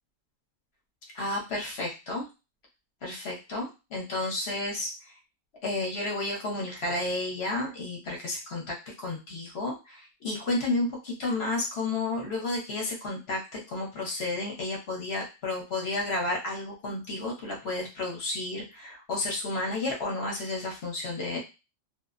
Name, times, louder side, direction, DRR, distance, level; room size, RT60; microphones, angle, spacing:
voice 1, 1.1-2.3 3.0-4.9 5.6-21.4, left 2 dB, 50° left, -1 dB, 0.9 m, -32 dB
2.5 x 2.0 x 2.4 m, 0.28 s
omnidirectional pair, 1.5 m